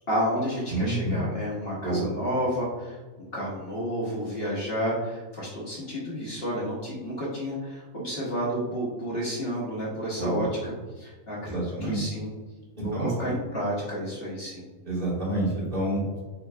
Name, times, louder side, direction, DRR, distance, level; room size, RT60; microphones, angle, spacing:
voice 1, 0.1-3.0 3.3-11.5 11.8-12.3 12.8-14.7, equal, 45° left, -6 dB, 1.1 m, -31 dB
voice 2, 0.7-1.2 1.8-2.1 10.2-10.5 11.4-12.0 12.8-13.3 14.8-16.2, right 1 dB, 40° right, -8 dB, 1.6 m, -28 dB
4.0 x 3.9 x 2.3 m, 1.3 s
omnidirectional pair, 1.5 m